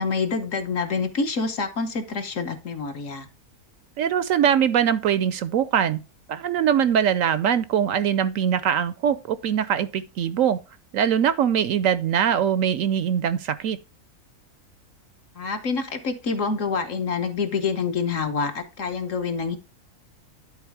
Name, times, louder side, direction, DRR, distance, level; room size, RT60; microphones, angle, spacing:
voice 1, 0.0-3.3 15.3-19.6, left 4 dB, 60° left, 1.5 m, -27 dB
voice 2, 4.0-6.0 6.3-10.6 10.9-13.8, right 8 dB, 70° right, 0.9 m, -22 dB
10.5 x 4.0 x 4.6 m
omnidirectional pair, 1.6 m